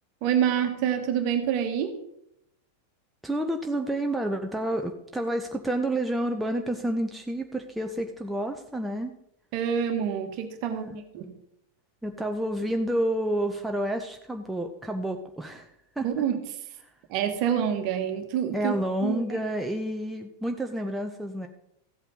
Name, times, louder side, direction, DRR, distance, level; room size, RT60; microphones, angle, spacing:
voice 1, 0.2-2.0 9.5-10.8 11.1-11.3 16.0-16.4 17.1-18.7 19.0-19.4, right 9 dB, 45° right, 7 dB, 1.4 m, -27 dB
voice 2, 3.2-9.1 10.6-11.0 12.0-15.7 16.0-16.1 18.5-21.5, right 1 dB, 5° right, 4 dB, 0.8 m, -29 dB
14.0 x 8.1 x 3.9 m, 0.77 s
figure-of-eight pair, 90°, 0 cm